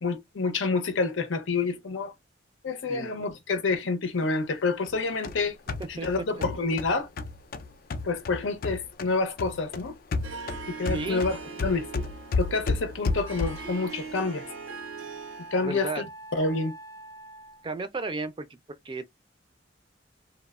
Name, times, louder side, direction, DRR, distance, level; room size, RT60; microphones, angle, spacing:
voice 1, 0.0-2.1 2.6-5.5 5.9-7.1 8.0-9.9 10.7-11.9 12.4-14.5 15.5-16.0 16.3-16.7, left 3 dB, 80° left, 0.6 m, -28 dB
voice 2, 2.9-3.3 6.0-6.1 6.4-6.5 10.9-11.2 15.6-16.0 17.6-18.5 18.8-19.0, right 3 dB, 25° right, 0.4 m, -33 dB
sound 1, 4.9-9.1 9.4-13.8, left 3 dB, 50° left, 0.3 m, -32 dB
Harp, 10.2-15.7, right 5 dB, 85° right, 0.6 m, -41 dB
Wind instrument woodwind instrument, 13.1-17.7, right 1 dB, 15° left, 0.6 m, -47 dB
3.0 x 2.0 x 2.3 m
head